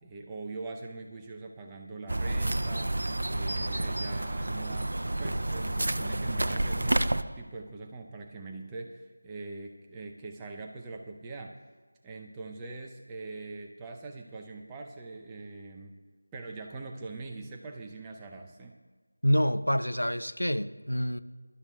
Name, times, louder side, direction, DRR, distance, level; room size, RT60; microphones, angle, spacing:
voice 1, 0.0-11.6 12.0-16.0 16.3-18.7, right 3 dB, 10° right, 0.6 m, -42 dB
sound 1, 2.1-7.2, right 1 dB, 55° right, 0.6 m, -30 dB
voice 2, 19.2-21.2, equal, 85° left, 0.6 m, -27 dB
22.0 x 12.0 x 2.3 m
figure-of-eight pair, 165°, 0 cm